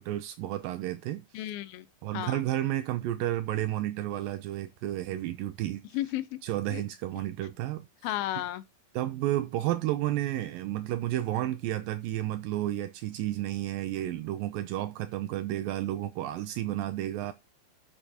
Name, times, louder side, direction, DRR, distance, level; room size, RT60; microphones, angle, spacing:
voice 1, 0.0-1.4 2.0-5.8 6.4-7.9 8.9-17.3, right 14 dB, 80° right, 2.3 m, -31 dB
voice 2, 1.3-1.9 2.1-2.4 5.9-6.4 6.7-6.8 8.0-8.7, left 14 dB, 85° left, 2.7 m, -33 dB
12.5 x 6.7 x 2.8 m
omnidirectional pair, 4.2 m